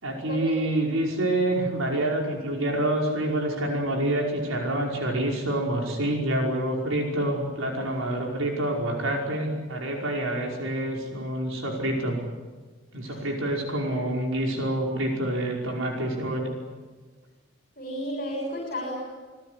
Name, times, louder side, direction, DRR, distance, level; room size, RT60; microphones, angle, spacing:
voice 1, 0.0-12.2 12.9-16.5, right 1 dB, 80° right, 0 dB, 5.3 m, -27 dB
voice 2, 17.8-18.9, equal, 45° left, 0 dB, 6.6 m, -33 dB
26.5 x 20.0 x 9.6 m, 1.4 s
head